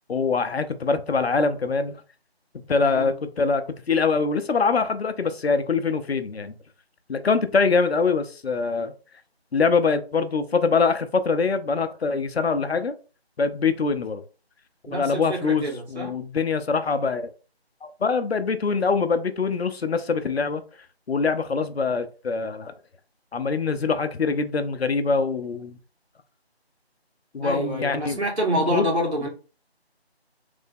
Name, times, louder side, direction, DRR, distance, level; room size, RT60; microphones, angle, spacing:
voice 1, 0.1-1.9 2.7-6.5 7.1-8.9 9.5-12.9 13.4-14.2 14.9-17.3 17.8-20.6 21.1-22.7 23.3-25.8 27.3-28.2 28.7-28.9, left 4 dB, 70° left, 0.5 m, -24 dB
voice 2, 2.8-3.2 14.9-16.1 27.4-29.3, equal, 90° right, 1.7 m, -27 dB
3.3 x 2.1 x 3.4 m
figure-of-eight pair, 175°, 32 cm